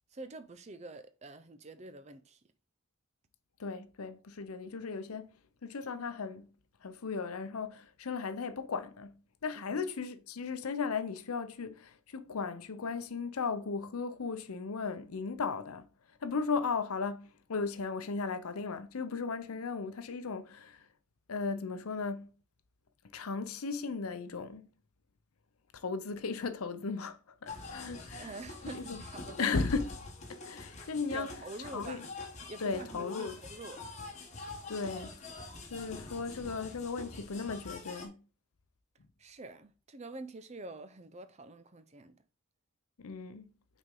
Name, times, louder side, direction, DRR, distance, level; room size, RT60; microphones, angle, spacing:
voice 1, 0.1-2.4 9.5-9.8 28.2-29.5 31.1-32.1 32.4-33.9 39.2-42.2, right 2 dB, 30° right, 0.5 m, -46 dB
voice 2, 3.6-5.3 5.6-6.5 6.8-15.9 16.2-20.8 21.3-22.3 23.1-24.7 25.7-28.3 28.7-29.0 29.4-29.9 30.3-31.3 31.7-32.0 32.6-33.4 34.7-35.2 35.7-38.2 43.0-43.4, left 4 dB, 85° left, 0.7 m, -36 dB
sound 1, 27.5-38.1, left 3 dB, 30° left, 1.2 m, -46 dB
6.0 x 4.3 x 3.7 m
head